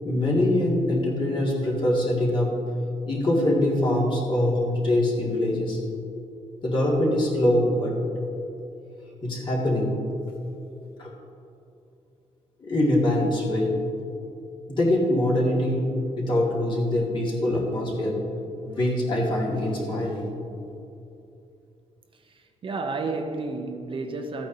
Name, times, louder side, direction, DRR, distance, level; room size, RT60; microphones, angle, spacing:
voice 1, 0.0-2.5 3.1-5.8 6.6-7.9 9.2-9.9 11.0-11.1 12.6-13.7 14.7-15.9 16.2-18.2 18.6-20.3, left 1 dB, 40° left, -4 dB, 2.1 m, -23 dB
voice 2, 22.2-24.5, right 3 dB, 40° right, 5 dB, 0.7 m, -31 dB
14.5 x 8.8 x 2.7 m, 2.7 s
wide cardioid pair, 145°, 13 cm